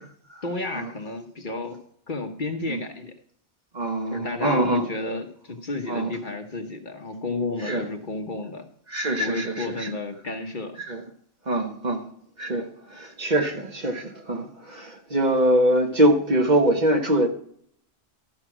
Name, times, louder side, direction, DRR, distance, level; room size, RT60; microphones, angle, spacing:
voice 1, 0.4-1.8 2.1-3.1 4.1-8.7 9.2-10.8, left 2 dB, 45° left, 1.3 m, -32 dB
voice 2, 3.7-4.9 5.9-6.1 7.6-7.8 8.9-9.9 10.9-11.0 11.5-12.0 12.4-17.3, right 1 dB, 40° right, 1.4 m, -23 dB
13.0 x 5.7 x 6.1 m
omnidirectional pair, 1.2 m